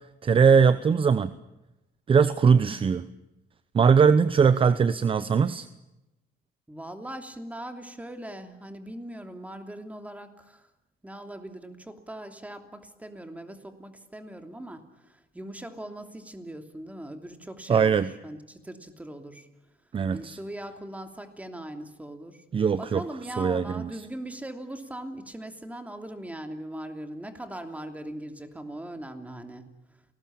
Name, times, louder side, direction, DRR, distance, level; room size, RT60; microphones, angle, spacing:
voice 1, 0.2-1.3 2.1-3.1 3.7-5.7 17.7-18.1 19.9-20.4 22.5-23.0 23.4-23.9, right 6 dB, 30° right, 14 dB, 0.8 m, -20 dB
voice 2, 6.7-10.7 11.0-19.5 20.1-22.4 22.8-29.7, right 1 dB, 10° right, 6 dB, 3.0 m, -40 dB
29.0 x 19.5 x 8.8 m, 0.98 s
cardioid pair, 110°, 17 cm